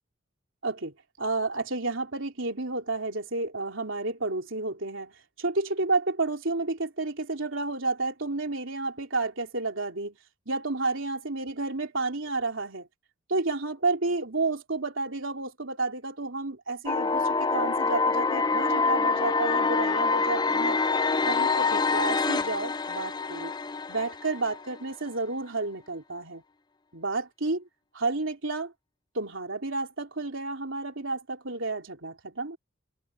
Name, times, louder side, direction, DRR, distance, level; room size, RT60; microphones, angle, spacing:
voice 1, 0.6-5.1 5.4-10.2 10.5-12.9 13.3-20.8 21.2-23.5 23.9-26.4 26.9-27.6 27.9-28.7 29.1-32.6, right 3 dB, 70° right, 3.8 m, -31 dB
sound 1, 16.9-24.8, left 4 dB, 20° left, 0.5 m, -26 dB
head